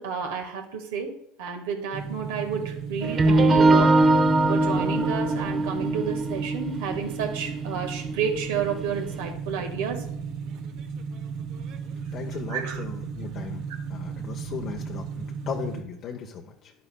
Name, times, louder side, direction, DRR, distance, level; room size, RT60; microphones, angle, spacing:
voice 1, 0.0-10.1 12.5-12.8, right 7 dB, 75° right, 4 dB, 1.6 m, -31 dB
sound 1, 1.9-15.8, right 6 dB, 60° right, 0.9 m, -35 dB
sound 2, 3.0-8.9, right 2 dB, 35° right, 1.1 m, -22 dB
voice 2, 12.1-13.6 13.9-16.7, left 6 dB, 50° left, 1 dB, 0.9 m, -37 dB
11.0 x 9.4 x 2.2 m, 0.74 s
hypercardioid pair, 75°, 0 cm